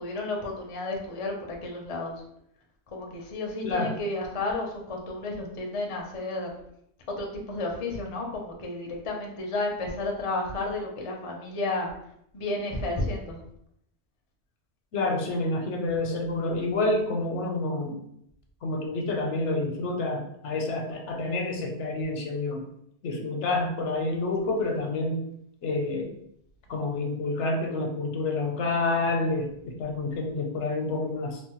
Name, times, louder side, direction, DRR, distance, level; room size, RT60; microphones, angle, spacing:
voice 1, 0.0-2.1 2.9-6.5 7.2-11.9 12.3-13.4, left 2 dB, 40° left, 0 dB, 0.5 m, -32 dB
voice 2, 14.9-18.0 18.6-22.7 23.0-25.2 25.6-26.1 26.7-31.4, left 2 dB, 85° left, 2 dB, 0.9 m, -28 dB
3.3 x 2.0 x 2.9 m, 0.73 s
omnidirectional pair, 1.2 m